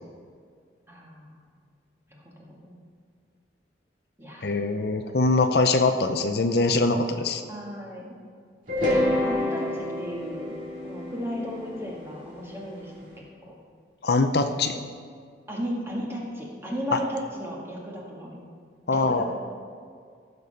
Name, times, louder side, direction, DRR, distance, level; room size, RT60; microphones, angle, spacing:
voice 1, 0.9-1.4 2.1-2.8 4.2-4.5 7.5-8.2 9.0-10.6 10.8-13.5 15.5-18.4 18.9-19.2, equal, 15° right, -3 dB, 1.8 m, -35 dB
voice 2, 4.4-7.4 14.0-14.8 16.9-17.0 18.9-19.2, left 3 dB, 60° left, 7 dB, 0.6 m, -23 dB
sound 1, 8.7-12.8, left 1 dB, 50° right, 2.9 m, -28 dB
14.5 x 6.9 x 5.6 m, 2.1 s
head